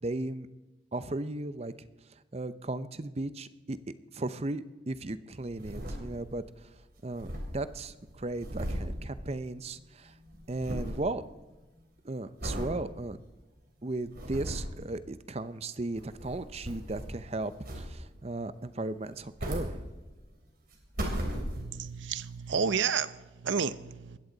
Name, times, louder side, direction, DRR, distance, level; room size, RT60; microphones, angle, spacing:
voice 1, 0.0-0.5 0.9-1.7 2.3-6.4 7.0-10.1 10.5-11.2 12.0-13.2 13.8-19.8, right 2 dB, 35° right, 13 dB, 0.6 m, -36 dB
sound 1, 5.3-6.5 6.7-6.8 7.0-9.8 10.1-11.1 11.5-11.8 12.4-12.8 13.3-13.4 13.9-14.8 15.8-17.2 17.6-18.2 19.0-20.3 20.7-21.9 22.5-22.6, equal, 50° right, 3.5 m, -37 dB
voice 2, 21.6-24.2, right 6 dB, 75° right, 14 dB, 0.7 m, -31 dB
20.5 x 15.5 x 4.0 m, 1.2 s
head